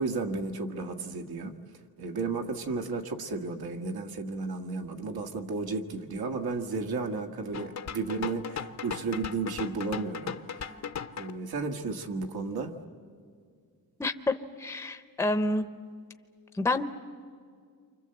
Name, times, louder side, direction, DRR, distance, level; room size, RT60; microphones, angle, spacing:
voice 1, 0.0-1.5 2.0-10.8 11.2-12.7, right 4 dB, 85° right, 5 dB, 1.8 m, -33 dB
sound 1, 7.5-11.3, left 7 dB, 50° left, 0.7 m, -38 dB
voice 2, 14.0-15.7 16.5-16.8, left 2 dB, 5° left, 10 dB, 0.7 m, -28 dB
29.0 x 25.0 x 7.8 m, 2.1 s
wide cardioid pair, 165°, 36 cm